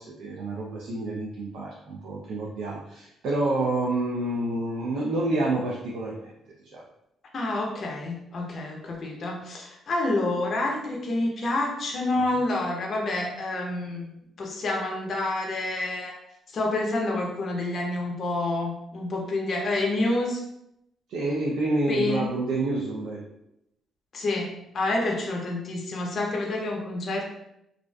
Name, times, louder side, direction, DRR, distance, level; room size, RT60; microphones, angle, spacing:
voice 1, 0.0-6.3 6.6-6.8 21.1-23.3, right 2 dB, 80° right, -2 dB, 0.4 m, -28 dB
voice 2, 7.3-16.1 16.5-20.4 21.9-22.3 24.1-27.2, left 2 dB, 50° left, 0 dB, 0.5 m, -28 dB
2.4 x 2.3 x 2.2 m, 0.81 s
cardioid pair, 90°, 0 cm